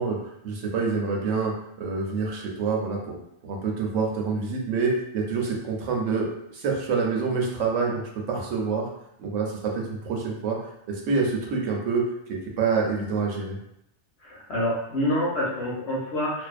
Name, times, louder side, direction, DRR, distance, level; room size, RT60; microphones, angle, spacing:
voice 1, 0.0-3.2 3.4-8.9 9.2-10.6 10.9-12.0 12.3-13.6, right 4 dB, 80° right, 0 dB, 0.9 m, -27 dB
voice 2, 14.2-16.5, left 1 dB, 65° left, -4 dB, 0.9 m, -27 dB
2.5 x 2.1 x 2.3 m, 0.77 s
omnidirectional pair, 1.3 m